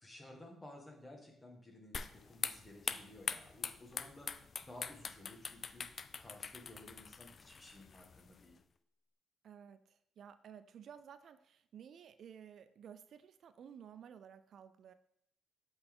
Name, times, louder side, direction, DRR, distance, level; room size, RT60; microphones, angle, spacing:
voice 1, 0.0-8.6, left 1 dB, 15° left, 0 dB, 1.8 m, -55 dB
sound 1, 1.9-8.5, left 5 dB, 45° left, 0.4 m, -44 dB
voice 2, 9.4-14.9, right 8 dB, 65° right, 12 dB, 0.3 m, -54 dB
7.9 x 4.0 x 3.7 m, 0.74 s
cardioid pair, 90°, 0 cm